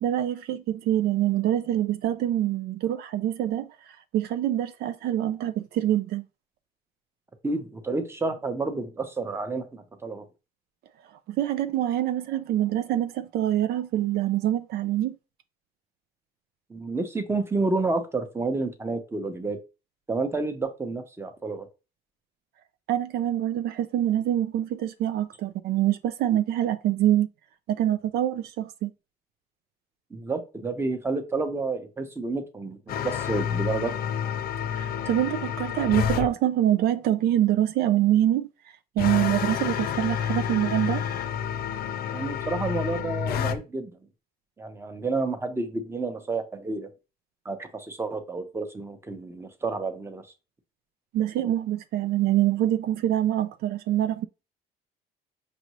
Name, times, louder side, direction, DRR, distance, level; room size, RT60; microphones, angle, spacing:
voice 1, 0.0-6.3 11.3-15.2 22.9-27.3 27.7-28.9 34.7-38.5 39.0-41.1 51.1-54.3, right 12 dB, 70° right, 0.4 m, -25 dB
voice 2, 7.4-10.2 16.7-19.6 20.1-21.7 30.1-33.9 42.1-43.9 44.6-46.9 47.4-50.2, right 3 dB, 15° right, 0.8 m, -30 dB
sound 1, 32.9-36.3 39.0-43.6, left 8 dB, 65° left, 0.6 m, -29 dB
5.3 x 2.6 x 3.0 m
cardioid pair, 110°, 17 cm